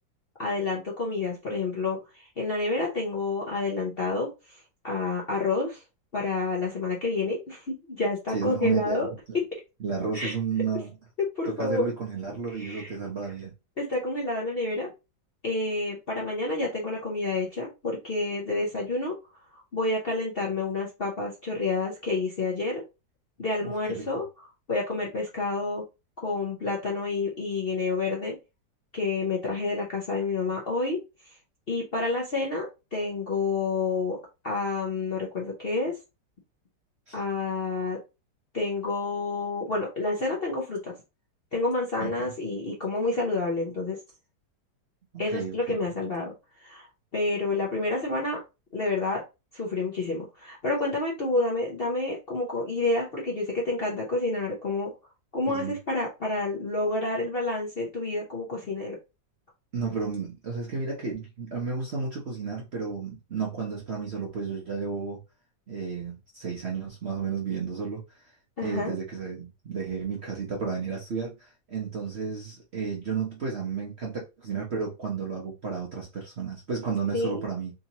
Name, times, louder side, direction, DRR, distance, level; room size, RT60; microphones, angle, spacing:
voice 1, 0.4-5.8 6.1-9.1 10.1-10.4 11.2-11.9 12.5-12.9 13.8-14.9 15.4-19.2 19.5-22.8 23.4-24.3 24.7-25.8 26.2-28.4 28.9-31.4 31.7-34.2 34.4-36.0 37.1-38.0 38.5-41.0 41.5-44.0 45.2-46.9 47.1-48.4 48.7-49.2 49.5-54.9 55.3-59.0 68.6-68.9 77.1-77.4, left 3 dB, 45° left, 0.7 m, -29 dB
voice 2, 8.3-9.4 9.8-10.9 11.5-13.5 23.6-24.0 37.1-37.2 42.0-42.1 45.1-45.9 55.5-55.7 59.7-65.2 65.7-68.0 68.6-77.7, right 5 dB, 50° right, 0.8 m, -32 dB
3.7 x 2.7 x 2.8 m
omnidirectional pair, 2.0 m